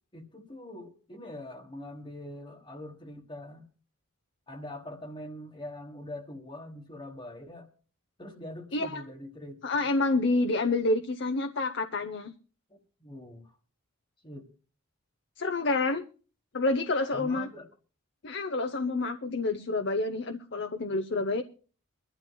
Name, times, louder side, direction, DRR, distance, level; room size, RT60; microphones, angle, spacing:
voice 1, 0.1-3.6 4.5-7.7 8.2-9.6 12.7-13.5 14.2-14.5 17.1-17.7, left 1 dB, 25° left, 1 dB, 1.3 m, -43 dB
voice 2, 8.7-9.0 9.6-12.3 15.4-16.0 16.5-17.5 18.2-21.4, left 2 dB, 55° left, 7 dB, 0.8 m, -28 dB
23.5 x 12.5 x 2.3 m, 0.38 s
head